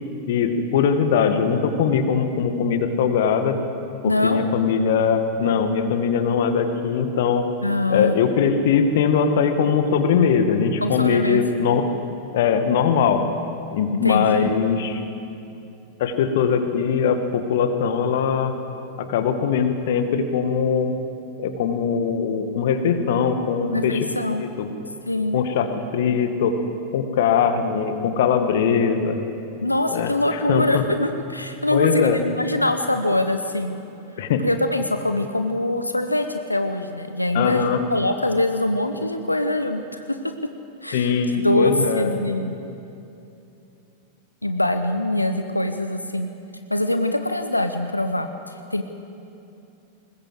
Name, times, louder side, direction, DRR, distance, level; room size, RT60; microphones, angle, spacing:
voice 1, 0.3-3.6 4.0-7.5 7.9-11.8 12.3-13.2 13.7-15.0 16.0-18.5 19.0-20.9 21.4-24.1 24.4-24.7 25.3-25.7 25.9-26.6 26.9-29.2 29.9-30.8 31.7-32.2 34.2-34.4 37.3-37.8 40.9-42.1, left 6 dB, 55° left, 8 dB, 2.0 m, -21 dB
voice 2, 4.0-4.4 7.6-8.2 10.8-11.4 14.0-14.5 23.7-24.4 25.1-25.4 29.6-33.8 34.2-40.2 40.8-42.6 44.4-46.3 46.7-48.8, left 1 dB, 85° left, 8 dB, 1.0 m, -23 dB
21.0 x 20.0 x 7.8 m, 2.7 s
figure-of-eight pair, 90°, 0 cm